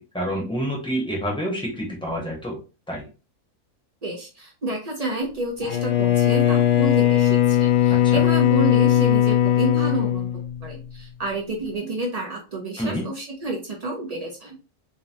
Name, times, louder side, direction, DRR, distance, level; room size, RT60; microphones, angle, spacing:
voice 1, 0.0-2.6 2.9-3.1 7.9-8.2 12.8-13.1, equal, 5° left, -1 dB, 0.7 m, -28 dB
voice 2, 4.0-10.3 10.6-14.6, right 2 dB, 60° right, 0 dB, 0.4 m, -30 dB
Bowed string instrument, 5.6-11.0, left 11 dB, 75° left, 1.0 m, -19 dB
3.7 x 2.1 x 2.6 m, 0.32 s
omnidirectional pair, 1.6 m